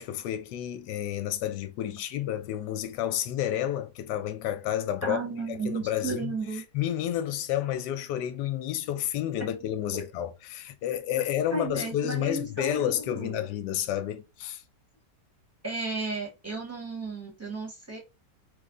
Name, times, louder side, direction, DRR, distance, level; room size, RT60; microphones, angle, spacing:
voice 1, 0.0-5.2 5.5-6.3 6.7-14.6, left 11 dB, 80° left, 1.2 m, -30 dB
voice 2, 5.0-6.6 11.5-13.4 15.6-18.0, right 3 dB, 10° right, 0.9 m, -34 dB
3.3 x 2.1 x 3.7 m
omnidirectional pair, 1.9 m